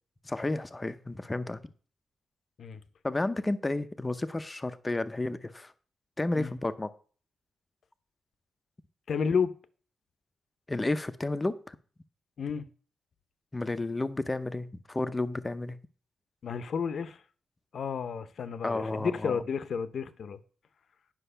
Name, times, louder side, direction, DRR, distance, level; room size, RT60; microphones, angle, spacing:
voice 1, 0.2-1.6 3.0-5.7 6.2-6.9 10.7-11.8 13.5-15.8 18.6-19.4, left 2 dB, 15° left, 0.6 m, -32 dB
voice 2, 9.1-9.5 12.4-12.7 16.4-17.2 17.7-20.4, left 6 dB, 55° left, 0.7 m, -31 dB
10.0 x 6.0 x 5.5 m
wide cardioid pair, 155°, 0 cm